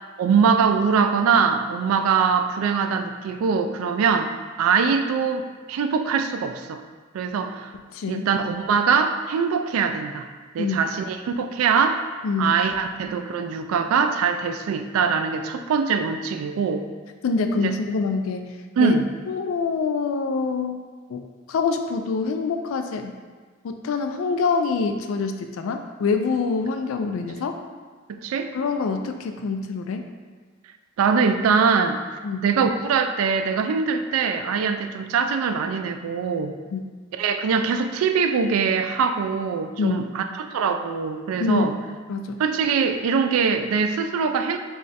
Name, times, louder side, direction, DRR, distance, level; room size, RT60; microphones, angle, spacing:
voice 1, 0.2-4.3 4.6-6.8 7.1-7.7 8.1-10.3 10.5-12.0 12.4-16.8 18.8-19.1 28.1-28.5 31.0-32.0 32.4-36.5 37.2-40.2 40.5-41.7 42.4-44.6, right 6 dB, 85° right, 10 dB, 0.3 m, -22 dB
voice 2, 7.9-8.3 10.6-10.9 12.2-12.6 17.2-19.0 19.3-20.8 21.1-21.2 21.5-23.2 23.6-27.6 28.5-30.1 32.2-32.5 36.7-36.8 39.8-40.0 41.4-41.7 42.1-42.4, left 4 dB, 70° left, 6 dB, 0.3 m, -25 dB
3.2 x 2.4 x 4.0 m, 1.5 s
head